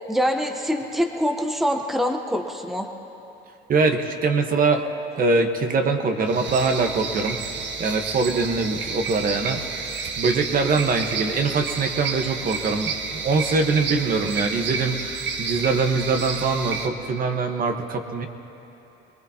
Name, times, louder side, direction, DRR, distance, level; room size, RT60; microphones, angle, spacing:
voice 1, 0.1-2.9, equal, ahead, 4 dB, 1.0 m, -24 dB
voice 2, 3.7-4.9 5.2-7.4 7.8-9.8 10.2-18.3, right 4 dB, 45° right, 4 dB, 1.3 m, -23 dB
sound 1, 6.3-16.9, right 5 dB, 65° right, 1.3 m, -30 dB
24.5 x 19.5 x 2.9 m, 3.0 s
cardioid pair, 100°, 20 cm